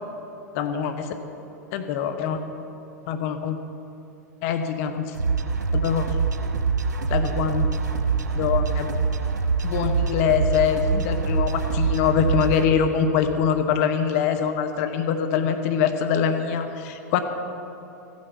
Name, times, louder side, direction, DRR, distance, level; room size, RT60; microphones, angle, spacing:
voice 1, 0.5-1.1 1.7-2.4 3.1-3.6 4.4-5.1 5.7-6.1 7.1-7.7 8.3-8.9 9.6-17.2, left 7 dB, 55° left, 7 dB, 1.3 m, -24 dB
sound 1, 5.1-12.6, right 5 dB, 90° right, 1.0 m, -24 dB
15.0 x 9.6 x 7.1 m, 2.8 s
hypercardioid pair, 105°, 9 cm